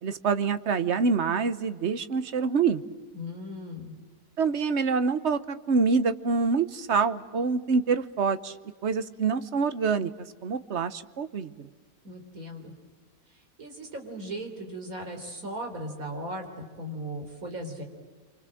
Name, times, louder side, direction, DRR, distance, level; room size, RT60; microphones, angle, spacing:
voice 1, 0.0-2.8 4.4-8.5 8.8-10.1 10.4-11.7, right 5 dB, 55° right, 13 dB, 1.2 m, -26 dB
voice 2, 3.1-4.0 12.0-12.7 13.3-17.8, equal, 75° right, 3 dB, 4.3 m, -37 dB
28.5 x 25.5 x 7.7 m, 1.5 s
omnidirectional pair, 1.5 m